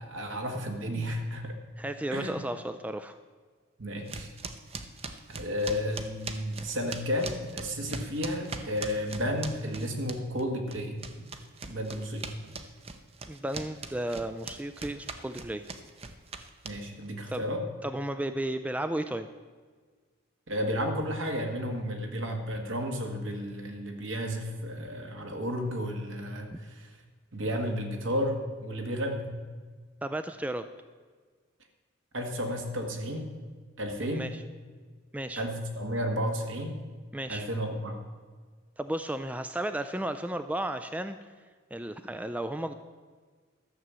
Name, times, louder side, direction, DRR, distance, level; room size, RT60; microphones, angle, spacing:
voice 1, 0.0-1.6 2.1-2.4 3.8-4.3 5.3-11.0 11.7-12.3 16.6-17.6 20.5-26.9 27.3-29.3 32.1-33.3 33.8-34.3 35.4-36.8 37.3-38.0, equal, 70° right, 3 dB, 1.8 m, -32 dB
voice 2, 1.8-3.2 13.3-15.7 17.3-17.4 17.8-19.3 30.0-30.7 34.0-34.4 35.1-35.4 37.1-37.5 38.8-41.2 41.7-42.8, right 1 dB, 5° right, 10 dB, 0.3 m, -33 dB
sound 1, 4.1-10.4 10.7-17.1, right 4 dB, 30° right, 0.7 m, -40 dB
12.5 x 7.0 x 7.4 m, 1.5 s
head